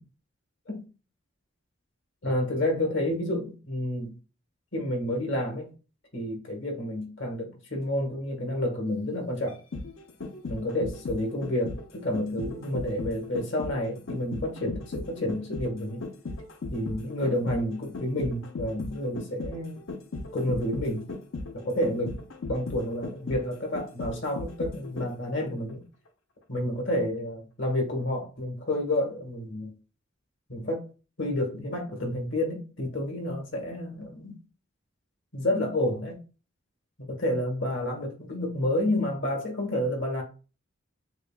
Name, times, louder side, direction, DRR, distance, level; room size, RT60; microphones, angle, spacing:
voice 1, 2.2-4.1 4.7-5.7 6.1-9.6 10.5-16.0 16.7-19.8 20.3-21.1 21.6-22.2 22.5-25.8 26.5-29.7 30.5-30.8 31.2-34.4 35.3-36.2 37.1-40.2, left 1 dB, 70° left, 1.4 m, -29 dB
sound 1, 9.5-25.4 25.7-25.8, left 3 dB, 90° left, 0.6 m, -37 dB
6.5 x 2.2 x 2.3 m
head